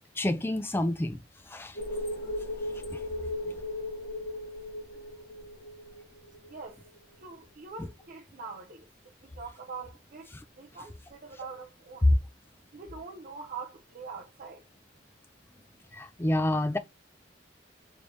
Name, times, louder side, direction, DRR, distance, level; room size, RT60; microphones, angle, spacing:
voice 1, 0.2-1.2 1.5-1.8 2.9-3.0 10.3-10.4 12.1-12.2 15.9-16.8, left 1 dB, 10° left, 0.3 m, -27 dB
sound 1, 1.7-7.0 7.2-7.3, left 1 dB, 50° left, 1.6 m, -37 dB
voice 2, 6.4-6.8 7.2-8.9 9.2-10.3 10.6-12.1 12.7-14.6, right 4 dB, 45° right, 0.5 m, -43 dB
3.3 x 3.2 x 2.5 m
head